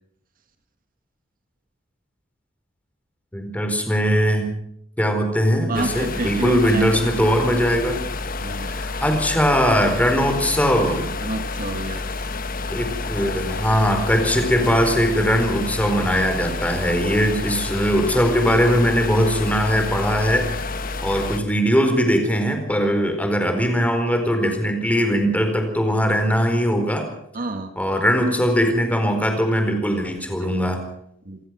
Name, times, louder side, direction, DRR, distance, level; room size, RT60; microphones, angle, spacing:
voice 1, 3.3-4.5 5.0-8.0 8.6-11.2 12.7-20.6 21.0-27.1 27.8-30.8, equal, 10° left, 5 dB, 4.4 m, -20 dB
sound 1, 5.7-21.4, left 3 dB, 45° left, 1.3 m, -29 dB
voice 2, 5.7-7.3 8.4-8.7 11.2-12.1 27.3-27.7 30.4-30.6 31.2-31.4, right 2 dB, 45° right, 7 dB, 1.6 m, -28 dB
28.5 x 15.5 x 6.1 m, 0.74 s
head